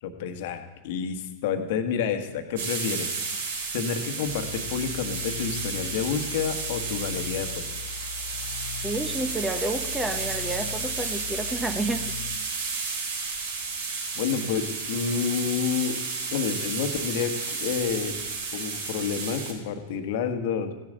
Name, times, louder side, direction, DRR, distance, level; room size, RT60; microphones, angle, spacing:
voice 1, 0.0-3.1 3.7-7.6 14.1-16.0 16.3-18.2 18.5-20.7, left 6 dB, 50° left, 7 dB, 1.5 m, -29 dB
sound 1, 2.6-19.5, right 4 dB, 55° right, 3.1 m, -32 dB
sound 2, 4.2-12.4, left 9 dB, 70° left, 0.6 m, -40 dB
voice 2, 8.8-12.0, right 2 dB, 10° right, 7 dB, 1.2 m, -30 dB
16.5 x 10.5 x 3.9 m, 1.2 s
figure-of-eight pair, 90°, 0 cm